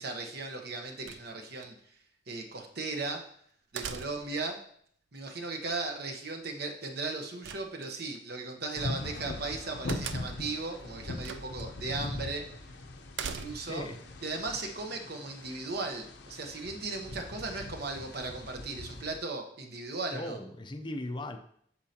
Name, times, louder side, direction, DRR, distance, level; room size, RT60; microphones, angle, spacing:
voice 1, 0.0-1.7 2.3-3.2 3.7-4.6 5.1-12.4 13.2-13.8 14.2-20.4, right 3 dB, 60° right, 3 dB, 1.1 m, -37 dB
sound 1, 1.1-1.7 3.8-4.4 7.4-8.2 9.9-10.5 11.2-11.7 12.0-12.1 13.1-13.8, right 7 dB, 85° right, 0.5 m, -40 dB
sound 2, 8.8-19.2, left 2 dB, 70° left, 0.8 m, -41 dB
voice 2, 13.5-14.0 20.1-21.4, left 1 dB, 25° left, 6 dB, 0.6 m, -38 dB
8.5 x 6.5 x 2.9 m, 0.63 s
head